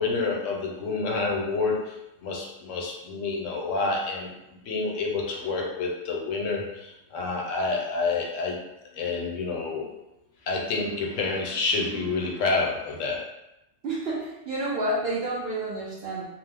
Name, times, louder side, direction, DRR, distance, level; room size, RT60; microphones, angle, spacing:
voice 1, 0.0-8.6 8.9-9.9 10.5-13.2, left 3 dB, 75° left, 0 dB, 0.9 m, -28 dB
voice 2, 13.8-16.2, right 1 dB, 60° right, -5 dB, 0.8 m, -29 dB
2.9 x 2.0 x 3.4 m, 0.90 s
omnidirectional pair, 1.4 m